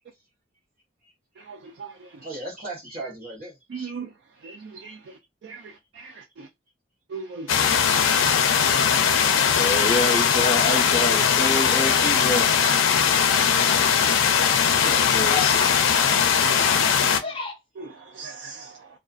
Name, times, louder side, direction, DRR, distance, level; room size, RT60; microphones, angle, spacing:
voice 1, 1.4-2.2 3.7-4.1 4.4-6.5 7.1-8.0 8.6-8.9 9.2-9.7 12.6-12.7 13.0-13.2 13.7-13.8 14.7-15.0 16.1-17.4 17.8-18.9, right 4 dB, 60° right, 0.3 m, -40 dB
voice 2, 2.2-4.0 5.1-5.2 11.4-12.5 17.9-18.0, right 2 dB, 40° right, 0.8 m, -39 dB
sound 1, 7.5-17.2, left 7 dB, 90° left, 0.5 m, -20 dB
voice 3, 9.6-12.5 14.8-15.8 17.2-17.5, left 2 dB, 25° left, 0.7 m, -27 dB
2.4 x 2.3 x 2.3 m
head